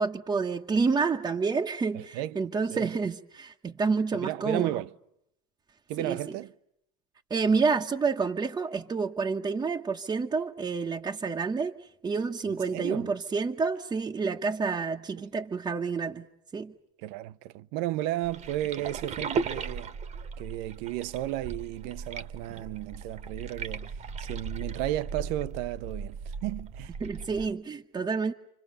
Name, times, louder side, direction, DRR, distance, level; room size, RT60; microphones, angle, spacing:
voice 1, 0.0-4.8 6.0-6.2 7.3-16.3 16.5-16.7 27.0-28.3, right 4 dB, 20° right, 1.2 m, -29 dB
voice 2, 1.9-2.4 2.7-2.9 4.1-4.9 5.9-6.5 12.7-13.1 15.2-15.3 17.0-19.9 20.4-26.9, right 14 dB, 65° right, 0.9 m, -34 dB
sound 1, 18.2-27.5, right 5 dB, 35° right, 1.5 m, -37 dB
30.0 x 25.0 x 6.6 m
supercardioid pair, 115°, 19 cm